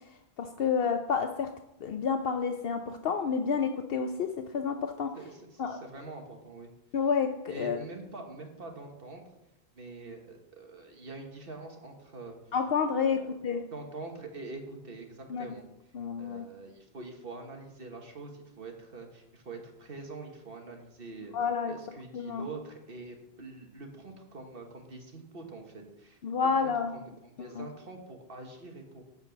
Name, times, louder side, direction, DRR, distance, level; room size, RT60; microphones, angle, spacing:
voice 1, 0.4-1.5 1.8-5.1 5.6-5.8 6.9-7.8 12.5-13.6 15.3-15.4 15.9-16.5 21.3-21.8 22.1-22.5 26.2-26.9 27.4-27.7, left 6 dB, 70° left, 6 dB, 0.8 m, -29 dB
voice 2, 5.1-6.7 7.5-9.2 9.7-12.4 13.0-13.4 13.7-15.6 16.2-21.3 21.6-26.2 26.6-29.0, right 3 dB, 65° right, 3 dB, 1.7 m, -45 dB
11.5 x 4.5 x 7.0 m, 0.89 s
omnidirectional pair, 1.0 m